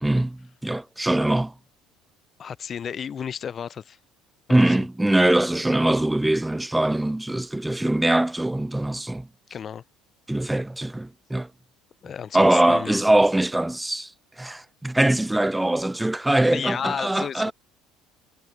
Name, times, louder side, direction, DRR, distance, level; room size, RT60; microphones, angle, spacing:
voice 1, 0.0-1.5 4.5-9.3 10.3-11.5 12.3-14.1 14.4-17.5, right 1 dB, 10° right, 0.8 m, -22 dB
voice 2, 2.4-4.0 4.5-4.9 9.5-9.8 12.0-13.0 16.5-17.5, left 7 dB, 40° left, 0.7 m, -32 dB
figure-of-eight pair, 60°, 0 cm